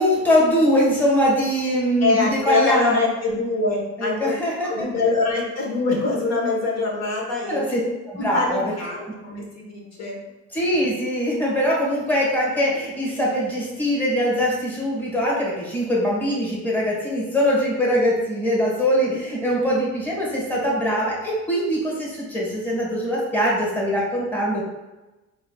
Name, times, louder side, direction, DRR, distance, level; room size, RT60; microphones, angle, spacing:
voice 1, 0.0-2.9 4.0-4.9 7.5-7.8 8.1-8.6 9.0-9.1 10.5-24.6, equal, 5° left, -4 dB, 1.4 m, -22 dB
voice 2, 2.0-4.3 4.6-7.6 8.2-9.0 9.2-10.1, left 3 dB, 60° left, -1 dB, 1.3 m, -24 dB
4.1 x 3.9 x 2.3 m, 1.1 s
cardioid pair, 90°, 30 cm